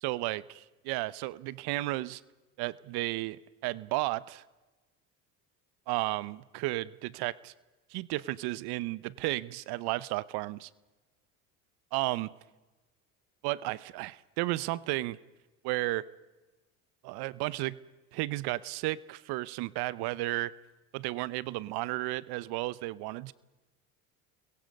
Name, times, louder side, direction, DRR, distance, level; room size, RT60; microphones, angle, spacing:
voice 1, 0.0-2.2 2.6-4.4 5.9-7.5 7.9-10.7 11.9-12.3 13.4-15.2 15.6-16.1 17.0-17.8 18.1-20.5 20.9-23.3, right 19 dB, 65° right, 20 dB, 0.9 m, -33 dB
30.0 x 22.0 x 5.3 m, 1.2 s
hypercardioid pair, 75°, 42 cm